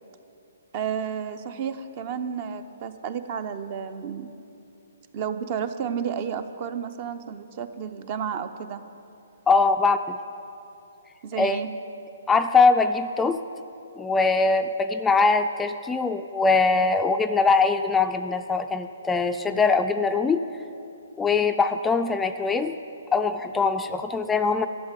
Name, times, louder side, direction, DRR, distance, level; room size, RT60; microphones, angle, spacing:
voice 1, 0.7-4.4 5.1-8.8 11.2-11.7, right 7 dB, 40° right, 10 dB, 0.7 m, -31 dB
voice 2, 9.5-10.2 11.4-11.6 12.3-13.4 14.0-20.4 21.2-22.8 23.1-24.7, left 4 dB, 10° left, 7 dB, 0.4 m, -22 dB
12.0 x 7.3 x 9.1 m, 2.7 s
hypercardioid pair, 135°, 0 cm